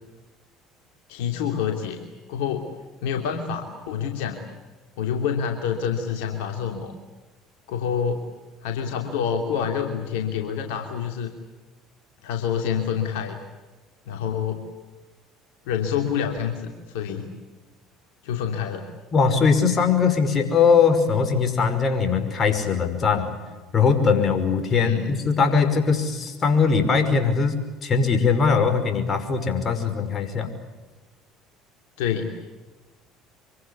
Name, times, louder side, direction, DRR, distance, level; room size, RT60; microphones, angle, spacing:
voice 1, 1.1-2.0 2.3-2.7 3.0-4.4 5.0-6.9 7.7-8.2 8.6-11.3 12.2-13.4 14.1-14.6 15.7-17.3 18.2-18.9 24.7-25.1 32.0-32.3, left 7 dB, 75° left, 3 dB, 2.8 m, -27 dB
voice 2, 19.1-23.3 23.7-30.5, left 5 dB, 40° left, 8 dB, 5.6 m, -21 dB
26.0 x 24.0 x 8.4 m, 1.2 s
hypercardioid pair, 65°, 0 cm